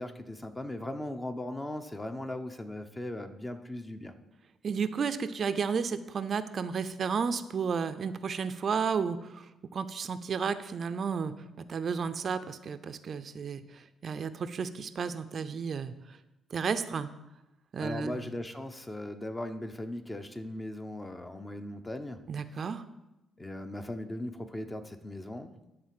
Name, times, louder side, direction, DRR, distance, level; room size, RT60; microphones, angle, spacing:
voice 1, 0.0-4.1 17.8-22.2 23.4-25.6, left 1 dB, 15° left, 7 dB, 0.9 m, -38 dB
voice 2, 4.6-11.3 11.7-15.9 16.5-17.1 17.7-18.1 22.3-22.8, right 6 dB, 50° right, 11 dB, 0.6 m, -32 dB
11.5 x 4.0 x 7.6 m, 0.95 s
cardioid pair, 90°, 0 cm